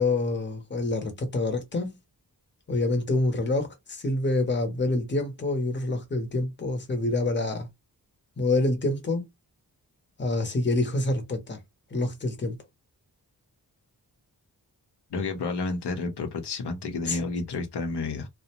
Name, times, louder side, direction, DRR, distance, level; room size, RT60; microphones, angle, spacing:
voice 1, 0.0-2.0 2.7-7.7 8.4-9.2 10.2-11.6 11.9-12.6 17.1-17.2, left 2 dB, 30° left, 0.8 m, -27 dB
voice 2, 15.1-18.3, left 3 dB, 85° left, 0.8 m, -30 dB
2.5 x 2.1 x 2.9 m
wide cardioid pair, 100°, 39 cm